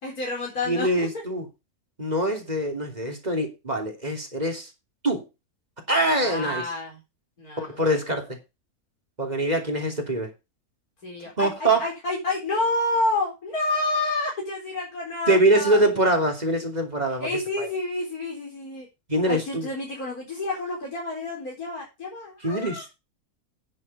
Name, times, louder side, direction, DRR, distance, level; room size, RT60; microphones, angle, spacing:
voice 1, 0.0-1.2 6.2-7.0 7.4-7.7 11.0-15.8 17.2-18.9 19.3-22.9, left 2 dB, 80° left, -2 dB, 4.6 m, -29 dB
voice 2, 0.7-1.5 2.0-4.7 5.0-5.2 5.9-6.6 7.6-8.3 9.2-10.3 11.4-11.8 15.3-17.3 17.6-17.7 19.1-19.7 22.4-22.9, right 1 dB, 30° right, 2 dB, 3.1 m, -24 dB
10.5 x 7.4 x 5.4 m, 0.26 s
omnidirectional pair, 1.5 m